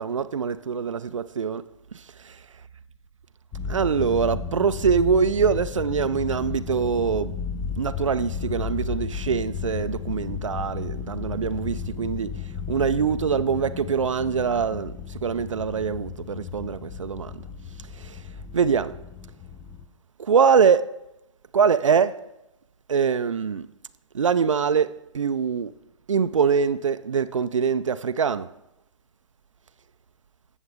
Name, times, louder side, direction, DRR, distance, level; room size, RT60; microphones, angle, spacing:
voice 1, 0.0-1.7 1.9-2.4 3.7-7.4 7.8-17.4 17.9-18.2 18.5-19.0 20.2-21.0 21.5-22.3 22.9-23.7 24.1-25.7 26.1-28.5, right 6 dB, 80° right, 0.5 m, -24 dB
sound 1, 3.5-19.9, left 7 dB, 20° left, 0.7 m, -34 dB
18.0 x 7.2 x 3.5 m
figure-of-eight pair, 125°, 16 cm